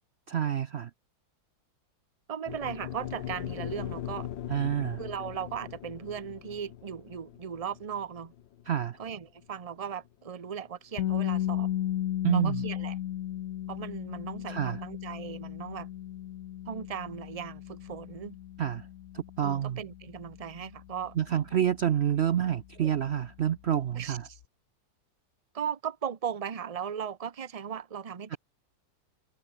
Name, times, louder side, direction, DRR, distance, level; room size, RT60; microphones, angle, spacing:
voice 1, 0.3-0.9 4.5-5.0 8.7-9.0 12.2-12.6 14.5-14.8 18.6-18.9 19.1-19.8 21.2-24.3 28.3-28.4, right 10 dB, 75° right, 0.6 m, -28 dB
voice 2, 2.3-4.3 5.0-8.3 9.0-11.7 12.3-13.0 13.7-15.9 16.7-18.4 19.4-21.1 22.8-22.9 24.0-24.4 25.5-28.4, right 8 dB, 35° right, 0.6 m, -37 dB
sound 1, 2.5-10.7, left 11 dB, 80° left, 1.7 m, -41 dB
sound 2, 11.0-22.8, left 12 dB, 65° left, 0.9 m, -35 dB
omnidirectional pair, 2.0 m